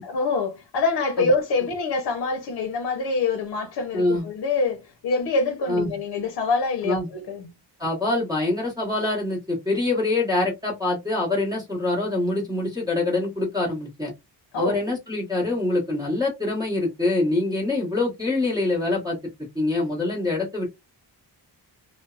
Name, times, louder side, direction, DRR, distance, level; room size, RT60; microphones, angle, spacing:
voice 1, 0.0-7.5 14.5-14.8, left 3 dB, 65° left, 0.7 m, -25 dB
voice 2, 3.9-4.2 5.7-5.9 6.8-7.1 7.8-14.1 14.5-19.2 19.5-20.7, left 2 dB, 10° right, 1.0 m, -25 dB
2.6 x 2.1 x 2.3 m
wide cardioid pair, 180°, 42 cm